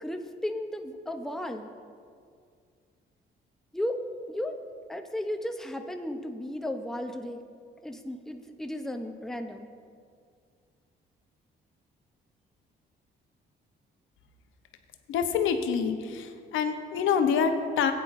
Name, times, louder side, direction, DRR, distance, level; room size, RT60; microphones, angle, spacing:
voice 1, 0.0-1.7 3.7-4.0 4.3-4.6 4.9-7.4 7.8-9.7, left 1 dB, ahead, 5 dB, 0.7 m, -34 dB
voice 2, 15.1-17.9, left 6 dB, 85° left, 7 dB, 0.8 m, -26 dB
15.5 x 9.1 x 2.6 m, 2.2 s
cardioid pair, 90°, 20 cm